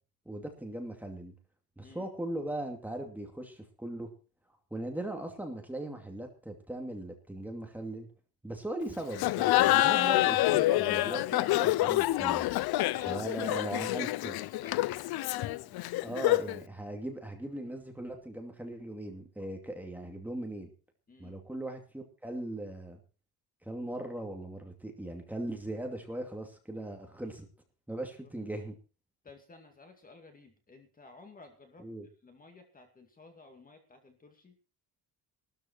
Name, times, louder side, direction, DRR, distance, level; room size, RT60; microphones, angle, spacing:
voice 1, 0.3-1.3 1.8-4.1 4.7-8.1 8.4-12.5 13.1-14.3 16.0-20.7 21.2-23.0 23.6-27.5 27.9-28.7 31.8-32.1, right 1 dB, 5° right, 3 dB, 2.6 m, -39 dB
Laughter, 9.1-16.6, left 16 dB, 80° left, 0.7 m, -27 dB
voice 2, 12.9-13.5 13.9-15.3 21.1-21.4 27.9-28.1 29.2-31.9 32.2-34.6, left 3 dB, 20° left, 5 dB, 2.4 m, -54 dB
15.0 x 13.5 x 4.6 m, 0.35 s
cardioid pair, 165°, 37 cm